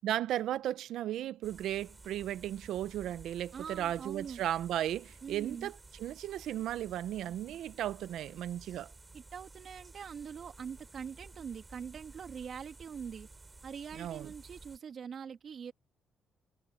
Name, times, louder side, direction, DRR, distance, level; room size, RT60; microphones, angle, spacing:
voice 1, 0.0-8.9 13.9-14.3, right 12 dB, 80° right, 0.8 m, -35 dB
sound 1, 1.4-14.8, right 3 dB, 20° right, 5.9 m, -54 dB
voice 2, 3.5-4.4 5.2-5.7 9.1-13.3 13.6-15.7, right 7 dB, 55° right, 2.9 m, -43 dB
cardioid pair, 90°, 0 cm